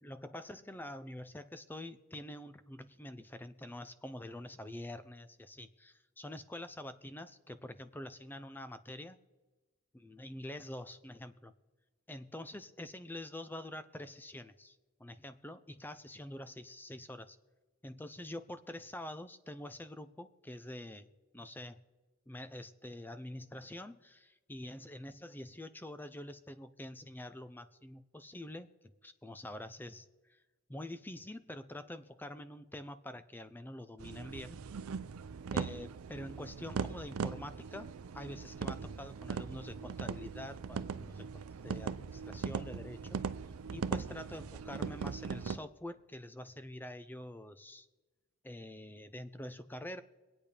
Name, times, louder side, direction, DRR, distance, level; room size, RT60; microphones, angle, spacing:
voice 1, 0.0-9.2 10.0-11.5 12.1-17.4 17.8-21.1 21.3-21.8 22.3-28.7 29.0-30.4 30.7-34.6 35.5-43.2 43.7-47.9 48.4-50.0, left 1 dB, 10° left, 11 dB, 0.5 m, -46 dB
sound 1, 34.0-45.6, right 5 dB, 80° right, 0.5 m, -40 dB
24.5 x 8.7 x 3.4 m, 1.2 s
head